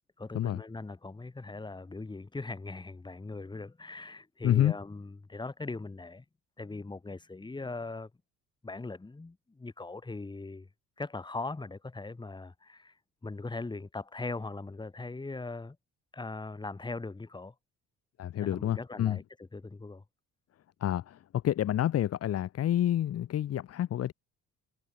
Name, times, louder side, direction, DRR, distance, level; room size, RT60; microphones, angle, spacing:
voice 1, 0.2-6.2 6.6-8.1 8.6-10.7 11.0-13.0 13.2-15.8 16.1-17.5 18.4-20.0, left 3 dB, 15° left, 2.9 m, -40 dB
voice 2, 4.4-4.8 18.2-19.2 20.8-24.1, left 11 dB, 50° left, 1.2 m, -28 dB
cardioid pair, 115°, 31 cm